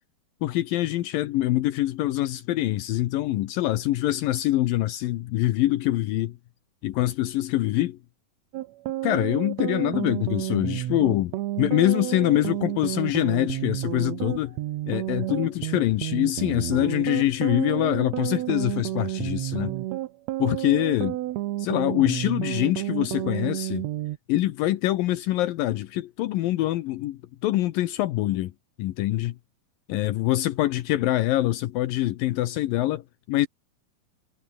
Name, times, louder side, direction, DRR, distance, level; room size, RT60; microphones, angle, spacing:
voice 1, 0.4-6.4 6.8-8.0 9.0-14.6 14.9-19.8 20.4-21.2 21.6-23.8 24.3-28.5 28.8-29.4 29.9-33.5, left 15 dB, 75° left, 2.6 m, -24 dB
sound 1, 8.5-24.2, right 15 dB, 75° right, 1.6 m, -31 dB
omnidirectional pair, 4.1 m